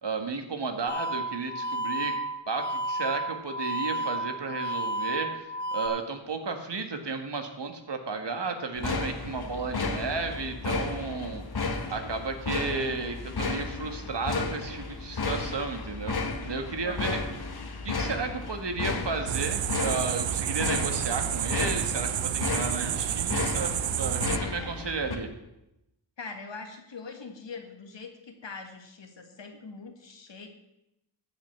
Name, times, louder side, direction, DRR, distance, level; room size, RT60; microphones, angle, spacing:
voice 1, 0.0-2.2 2.5-11.4 11.9-16.2 16.4-17.2 17.8-25.3, right 4 dB, 65° right, 5 dB, 1.8 m, -33 dB
sound 1, 0.9-5.9, right 1 dB, 25° right, 2.7 m, -32 dB
sound 2, 8.8-25.2, left 3 dB, 55° left, 1.6 m, -33 dB
voice 2, 16.8-17.3 24.6-24.7 26.2-30.5, left 4 dB, 70° left, 4 dB, 2.0 m, -42 dB
sound 3, 19.3-24.4, right 11 dB, 85° right, 0.6 m, -30 dB
14.0 x 5.6 x 7.6 m, 0.89 s
cardioid pair, 50°, 45 cm